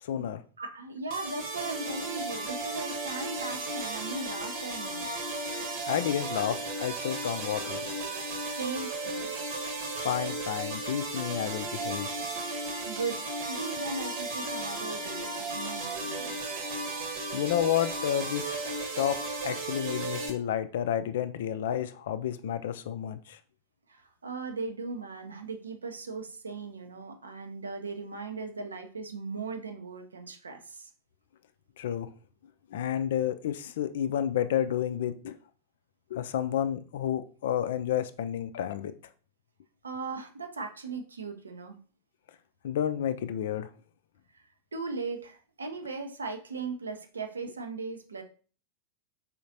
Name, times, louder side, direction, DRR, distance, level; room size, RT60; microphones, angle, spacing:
voice 1, 0.0-0.4 5.9-7.9 10.0-12.1 17.3-18.5 19.0-23.4 31.8-32.1 32.7-35.4 36.1-38.9 42.6-43.7, left 10 dB, 55° left, 0.3 m, -30 dB
voice 2, 0.6-5.1 8.4-9.4 12.7-16.4 23.9-30.9 39.8-41.8 44.7-48.2, right 3 dB, 75° right, 0.6 m, -38 dB
sound 1, 1.1-20.3, right 2 dB, 50° right, 1.0 m, -35 dB
4.3 x 3.8 x 2.7 m
figure-of-eight pair, 90°, 0 cm